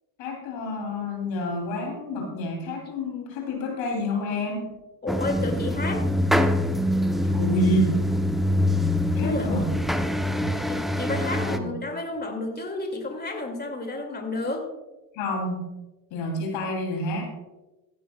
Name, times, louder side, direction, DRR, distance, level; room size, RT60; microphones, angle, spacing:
voice 1, 0.2-4.6 7.2-8.0 9.1-10.1 11.4-11.8 15.1-15.7 16.1-17.3, left 1 dB, 75° left, 2 dB, 3.4 m, -29 dB
voice 2, 5.0-6.0 9.2-9.7 10.7-14.6, left 2 dB, 20° left, 3 dB, 2.4 m, -31 dB
sound 1, 5.1-11.6, left 1 dB, ahead, 0.7 m, -24 dB
16.0 x 9.3 x 2.3 m, 1.1 s
hypercardioid pair, 65°, 46 cm